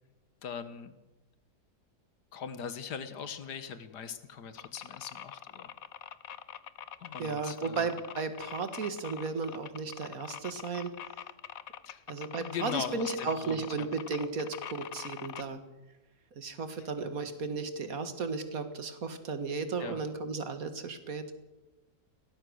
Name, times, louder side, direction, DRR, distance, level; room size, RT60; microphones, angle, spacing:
voice 1, 0.4-0.9 2.3-5.7 7.0-7.9 11.9-12.0 12.4-13.9 16.8-16.9 19.8-20.0, left 7 dB, 85° left, 11 dB, 1.9 m, -40 dB
sound 1, 4.6-15.4, left 9 dB, 65° left, 1.3 m, -44 dB
voice 2, 7.2-10.9 12.1-15.6 16.4-21.3, right 4 dB, 60° right, 9 dB, 2.2 m, -35 dB
23.0 x 18.0 x 6.5 m, 1.0 s
omnidirectional pair, 1.7 m